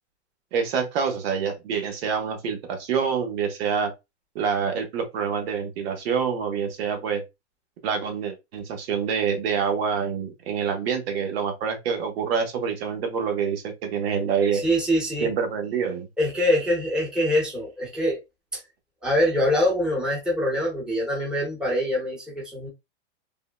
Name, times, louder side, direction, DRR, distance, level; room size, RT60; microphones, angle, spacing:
voice 1, 0.5-3.9 4.3-7.2 7.8-14.6 15.2-16.1, right 6 dB, 60° right, 0.9 m, -26 dB
voice 2, 14.5-15.3 16.2-18.2 18.5-18.6 19.0-22.7, equal, ahead, 0.8 m, -24 dB
3.7 x 2.1 x 2.2 m
supercardioid pair, 150°, 35 cm